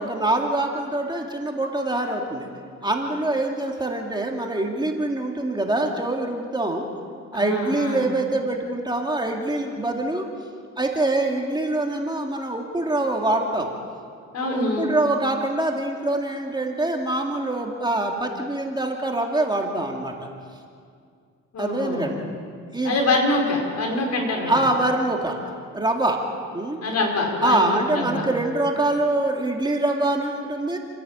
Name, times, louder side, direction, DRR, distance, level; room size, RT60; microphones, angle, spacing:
voice 1, 0.0-2.5 2.8-6.8 7.3-10.2 10.8-13.7 14.4-20.3 21.6-22.2 22.7-22.9 23.8-24.0 24.4-25.4 25.7-26.2 26.5-26.8 27.4-30.8, right 2 dB, 15° right, 1 dB, 2.5 m, -24 dB
voice 2, 7.3-8.1 14.3-14.9 21.5-22.2 22.8-24.7 26.8-28.2, left 2 dB, 60° left, 0 dB, 5.3 m, -25 dB
29.0 x 11.0 x 8.8 m, 2.2 s
cardioid pair, 90°, 30 cm